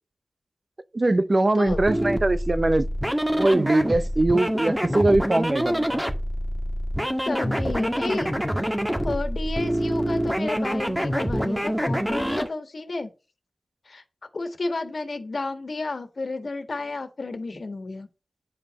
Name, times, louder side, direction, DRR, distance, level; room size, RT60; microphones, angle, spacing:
voice 1, 0.9-2.9 3.3-6.0, right 2 dB, 45° right, 0.7 m, -22 dB
sound 1, 1.6-12.5, equal, 10° right, 1.6 m, -26 dB
voice 2, 7.2-8.3 8.6-8.7 9.0-13.1 13.9-14.0 14.3-18.1, left 3 dB, 65° left, 1.6 m, -31 dB
9.8 x 5.0 x 5.3 m
cardioid pair, 50°, 0 cm